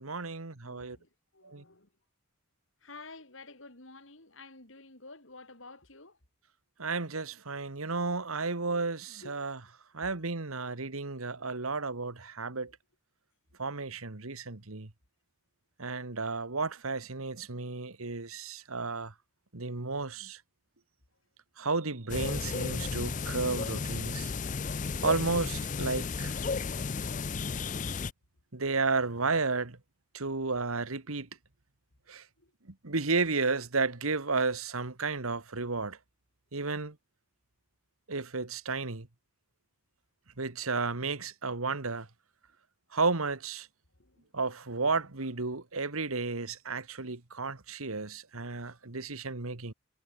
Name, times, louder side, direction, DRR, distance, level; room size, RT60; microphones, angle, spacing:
voice 1, 0.0-1.0 1.4-1.6 6.8-9.6 9.9-12.7 13.6-14.9 15.8-19.1 19.5-20.4 21.6-24.3 25.0-26.4 28.5-29.8 30.1-31.3 32.1-32.3 32.7-36.0 36.5-37.0 38.1-39.1 40.4-42.1 42.9-43.7 44.3-49.7, right 4 dB, 85° right, 1.8 m, -32 dB
voice 2, 0.6-1.9 2.8-6.2 9.2-9.4 10.0-10.1 32.4-32.5 34.1-34.2 34.7-34.8 44.0-44.2, left 3 dB, 65° left, 4.4 m, -51 dB
sound 1, 22.1-28.1, left 4 dB, 35° left, 0.5 m, -34 dB
head